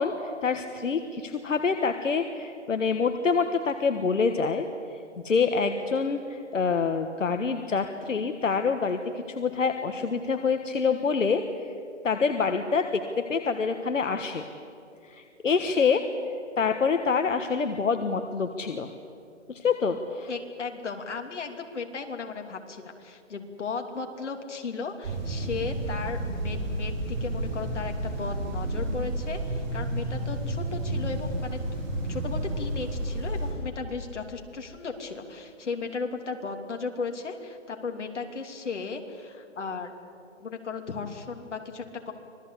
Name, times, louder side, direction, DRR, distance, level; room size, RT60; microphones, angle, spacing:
voice 1, 0.0-4.7 5.2-9.0 9.3-11.4 12.0-14.5 15.1-16.0 16.6-18.9 19.5-20.3, left 5 dB, 90° left, 7 dB, 1.6 m, -26 dB
voice 2, 20.3-31.6 32.1-39.9 40.4-42.1, left 4 dB, 70° left, 4 dB, 3.0 m, -36 dB
sound 1, 25.0-33.5, right 1 dB, 35° right, 6.6 m, -31 dB
26.0 x 18.5 x 8.4 m, 2.5 s
hypercardioid pair, 170°, 37 cm